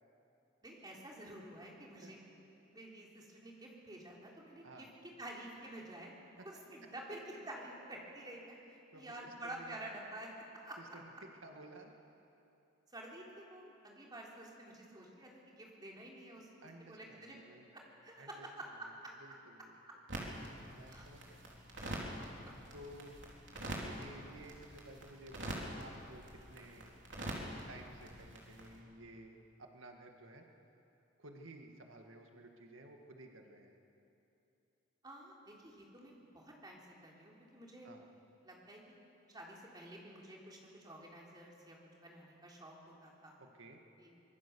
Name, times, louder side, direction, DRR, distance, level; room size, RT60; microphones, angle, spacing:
voice 1, 0.6-2.2 2.7-10.3 10.6-10.8 12.9-17.4 17.7-19.1 20.9-21.1 21.8-22.5 35.0-37.9 38.4-39.0 39.3-41.8 42.0-43.4 44.0-44.2, right 1 dB, 20° right, -2 dB, 3.6 m, -50 dB
voice 2, 8.9-9.7 10.8-11.9 16.6-17.6 18.2-18.5 18.8-18.9 19.2-19.7 20.7-21.7 22.7-23.2 23.7-26.9 27.7-30.5 31.2-33.7 37.8-38.0 43.4-43.8, right 1 dB, 90° right, 3 dB, 1.9 m, -55 dB
sound 1, 20.1-28.8, right 1 dB, 65° right, 3.9 m, -45 dB
24.5 x 20.5 x 7.0 m, 2.8 s
head